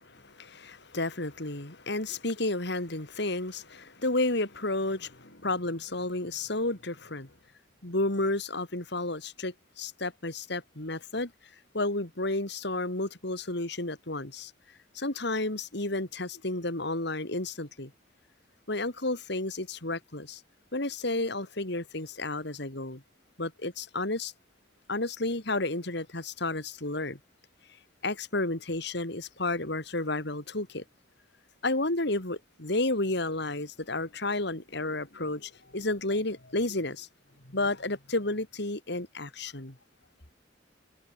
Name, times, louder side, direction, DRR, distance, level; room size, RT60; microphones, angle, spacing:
voice 1, 0.1-7.3 7.8-11.3 11.7-14.5 14.9-17.9 18.7-20.4 20.7-23.0 23.4-24.3 24.9-27.2 28.0-30.8 31.6-37.1 37.4-39.8, left 2 dB, 60° left, 3.5 m, -31 dB
head